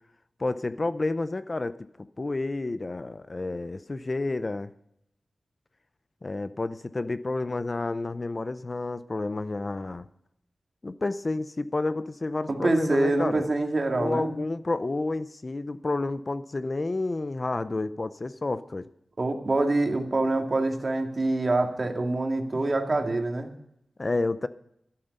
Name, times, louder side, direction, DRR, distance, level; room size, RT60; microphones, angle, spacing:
voice 1, 0.4-4.7 6.2-10.1 10.8-13.5 13.9-18.9 22.5-22.6 24.0-24.5, left 2 dB, 35° left, 13 dB, 0.5 m, -30 dB
voice 2, 12.5-14.3 19.2-23.5, right 2 dB, 40° right, 3 dB, 2.1 m, -25 dB
12.5 x 12.0 x 5.3 m, 0.76 s
wide cardioid pair, 120°, 0 cm